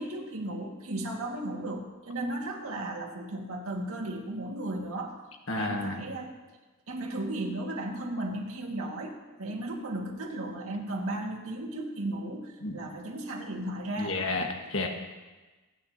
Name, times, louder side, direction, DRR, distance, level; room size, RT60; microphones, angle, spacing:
voice 1, 0.0-5.1 5.6-6.4 6.9-14.2, right 1 dB, 75° right, 0 dB, 2.0 m, -35 dB
voice 2, 5.5-6.0 12.6-12.9 14.0-14.9, left 2 dB, 60° left, 2 dB, 1.6 m, -31 dB
26.5 x 9.4 x 2.9 m, 1.2 s
head